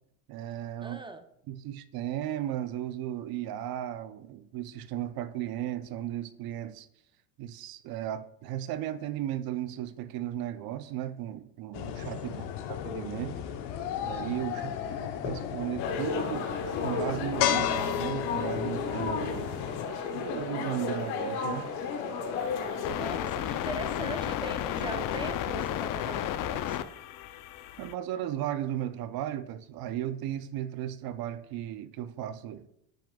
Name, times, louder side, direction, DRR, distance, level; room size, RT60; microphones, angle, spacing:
voice 1, 0.3-1.0 1.5-6.9 7.4-13.4 14.0-14.7 15.0-16.5 16.8-19.5 20.1-21.7 27.8-32.7, right 12 dB, 55° right, 0.6 m, -35 dB
voice 2, 0.8-1.2 12.3-12.6 14.5-15.0 22.9-26.9, right 2 dB, 10° right, 0.6 m, -40 dB
sound 1, 11.7-19.9, left 10 dB, 65° left, 1.0 m, -33 dB
sound 2, 15.8-22.9, left 5 dB, 90° left, 1.3 m, -33 dB
sound 3, 22.4-27.9, left 11 dB, 50° left, 0.5 m, -33 dB
10.0 x 5.9 x 2.3 m
supercardioid pair, 110°, 43 cm